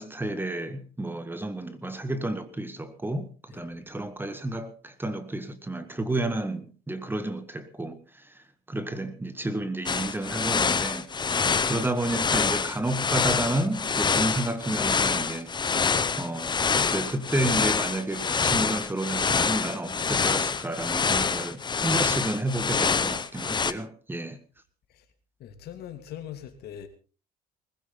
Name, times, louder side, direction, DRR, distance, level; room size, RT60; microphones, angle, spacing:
voice 1, 0.0-11.1 11.6-15.5 16.2-16.6 16.8-24.4, right 1 dB, 10° right, 1.7 m, -31 dB
sound 1, 9.9-23.7, left 5 dB, 25° left, 1.0 m, -26 dB
voice 2, 25.4-26.9, left 10 dB, 70° left, 2.7 m, -41 dB
20.5 x 15.5 x 3.9 m
cardioid pair, 110°, 17 cm